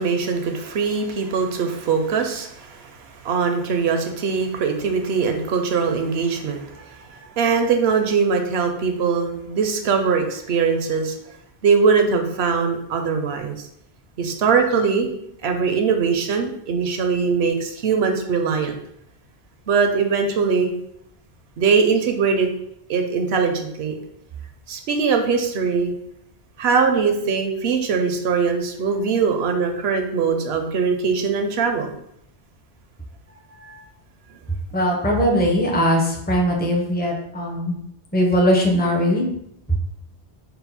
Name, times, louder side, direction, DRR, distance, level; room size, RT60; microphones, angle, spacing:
voice 1, 0.0-11.2 11.6-13.6 14.2-15.1 15.4-18.8 19.7-20.7 21.6-22.5 22.9-23.9 24.7-25.9 26.6-31.9 33.6-33.8, right 5 dB, 75° right, 5 dB, 0.8 m, -21 dB
voice 2, 34.7-37.8 38.1-39.2, equal, 10° left, 0 dB, 0.5 m, -20 dB
4.1 x 2.1 x 4.0 m, 0.74 s
omnidirectional pair, 1.1 m